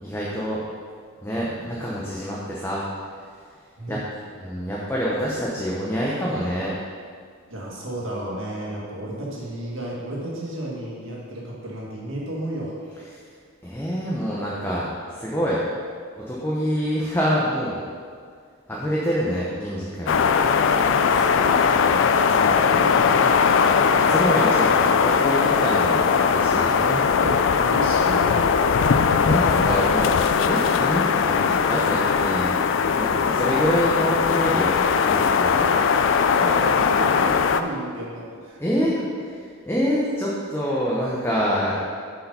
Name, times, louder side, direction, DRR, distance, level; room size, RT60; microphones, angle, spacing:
voice 1, 0.0-0.6 1.2-2.8 3.9-4.0 4.3-6.7 13.1-13.2 13.6-15.6 16.2-17.8 18.7-20.2 23.8-26.0 26.3-26.7 28.9-30.1 30.5-32.6 32.9-35.6 38.6-38.9 39.7-41.8, equal, 10° left, -6 dB, 0.8 m, -26 dB
voice 2, 7.5-12.7 21.1-23.5 26.8-28.5 35.5-36.0 36.4-38.6 39.0-39.1, right 1 dB, 65° right, -4 dB, 1.8 m, -33 dB
sound 1, 20.1-37.6, left 6 dB, 65° left, 0.3 m, -19 dB
7.0 x 4.9 x 5.5 m, 2.1 s
head